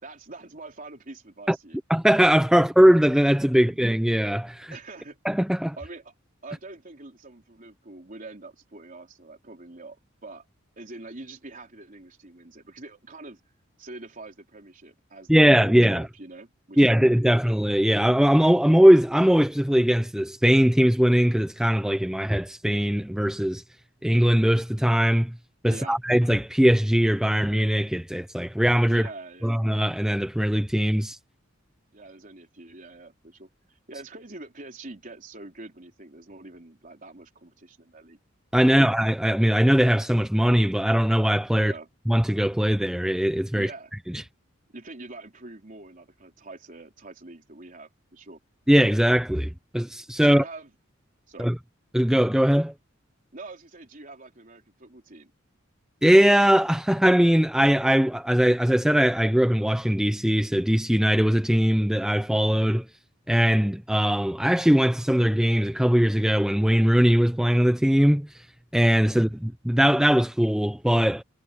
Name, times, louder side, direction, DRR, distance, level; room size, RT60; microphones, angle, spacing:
voice 1, 0.0-1.8 3.5-3.8 4.7-5.2 5.8-6.1 6.4-10.5 10.8-13.4 13.8-17.4 25.7-26.0 28.9-29.6 31.9-38.2 41.6-41.9 43.5-43.9 44.7-48.4 50.2-50.7 51.3-51.5 53.3-55.3 69.1-69.4, right 2 dB, 40° right, 3.8 m, -44 dB
voice 2, 1.9-4.7 5.3-5.8 15.3-16.1 16.8-23.6 24.0-25.3 25.6-29.0 29.4-31.2 38.5-41.7 42.1-43.7 44.1-44.2 48.7-50.4 51.4-51.5 51.9-52.7 56.0-62.8 63.3-68.3 68.7-71.2, equal, 5° right, 0.5 m, -20 dB
head